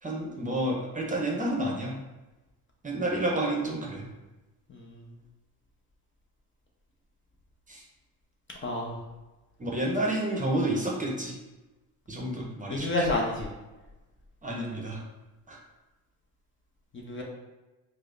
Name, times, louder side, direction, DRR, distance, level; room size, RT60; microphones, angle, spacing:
voice 1, 0.0-1.9 2.8-4.0 7.7-7.8 9.6-11.3 12.1-13.0 14.4-15.0 15.5-15.6, right 1 dB, 20° right, -1 dB, 0.7 m, -30 dB
voice 2, 4.7-5.0 8.6-9.0 12.7-13.5 16.9-17.2, left 2 dB, 30° left, -1 dB, 0.6 m, -29 dB
4.6 x 2.0 x 2.5 m, 1.1 s
supercardioid pair, 85°, 41 cm